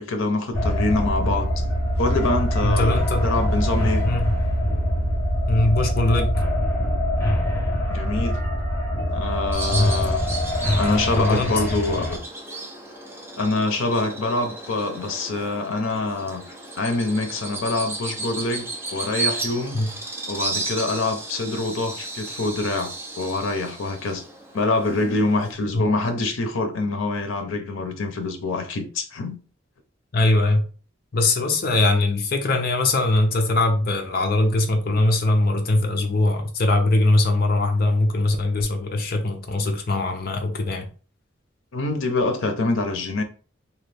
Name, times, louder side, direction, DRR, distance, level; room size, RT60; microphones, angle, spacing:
voice 1, 0.0-1.5 2.0-4.0 7.9-8.4 9.1-10.2 10.7-12.2 13.4-16.4 16.8-19.8 20.3-24.2 24.5-29.4 41.7-43.2, left 2 dB, 90° left, 0.6 m, -25 dB
sound 1, 0.5-12.2, equal, 10° left, 0.9 m, -23 dB
voice 2, 2.6-3.3 4.1-4.3 5.5-6.4 9.7-9.9 11.2-11.5 19.7-19.9 25.7-25.9 30.1-30.6 31.1-40.9, left 2 dB, 50° left, 0.6 m, -21 dB
Bird vocalization bird call bird song, 9.5-25.5, right 3 dB, 10° right, 0.6 m, -34 dB
3.0 x 2.3 x 3.3 m
head